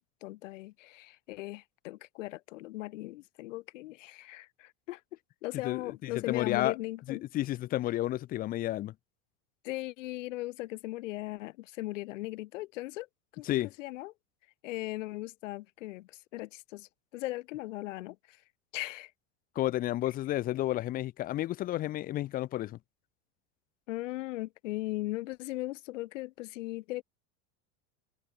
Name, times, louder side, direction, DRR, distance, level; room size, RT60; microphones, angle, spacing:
voice 1, 0.0-5.0 5.4-7.2 9.6-13.1 13.3-13.5 13.8-14.1 14.6-18.4 18.7-19.1 20.0-20.1 23.9-27.0, left 18 dB, 90° left, 1.1 m, -38 dB
voice 2, 6.1-6.7 7.1-8.9 13.4-13.7 19.6-22.8, left 14 dB, 25° left, 0.4 m, -31 dB
open air
supercardioid pair, 125°, 36 cm